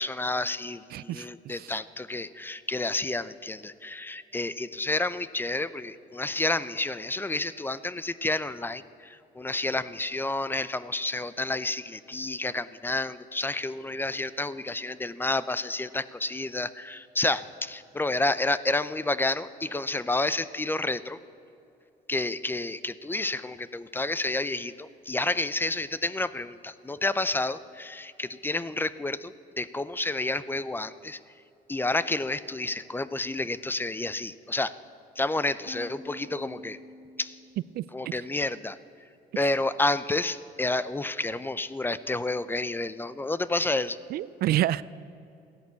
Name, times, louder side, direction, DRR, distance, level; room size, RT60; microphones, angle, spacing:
voice 1, 0.0-21.2 22.1-31.2 31.7-34.7 35.2-36.8 37.2-37.4 37.9-38.8 39.4-44.0, left 2 dB, 10° left, 15 dB, 0.5 m, -30 dB
voice 2, 0.9-1.7 37.7-38.1 44.1-44.8, right 14 dB, 65° right, 19 dB, 0.4 m, -29 dB
sound 1, 35.7-38.1, left 2 dB, 35° left, 2.7 m, -47 dB
15.0 x 11.0 x 8.3 m, 2.8 s
cardioid pair, 110°, 17 cm